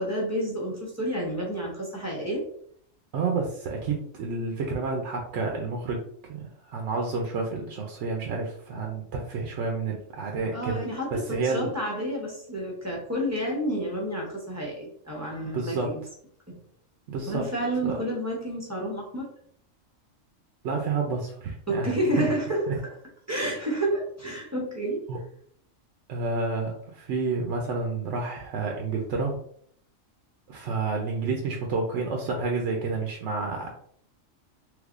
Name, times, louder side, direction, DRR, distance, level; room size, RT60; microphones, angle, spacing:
voice 1, 0.0-2.5 10.5-16.0 16.5-16.6 17.3-19.3 21.7-22.7 23.3-25.0, equal, 15° right, -2 dB, 0.6 m, -30 dB
voice 2, 3.1-6.0 6.3-10.8 11.1-11.7 15.5-15.9 17.1-17.4 17.8-18.0 20.6-22.0 22.7-22.8 25.1-25.2 26.1-29.4 30.5-33.7, right 4 dB, 70° right, 1 dB, 0.8 m, -29 dB
3.4 x 3.1 x 2.4 m, 0.63 s
omnidirectional pair, 1.4 m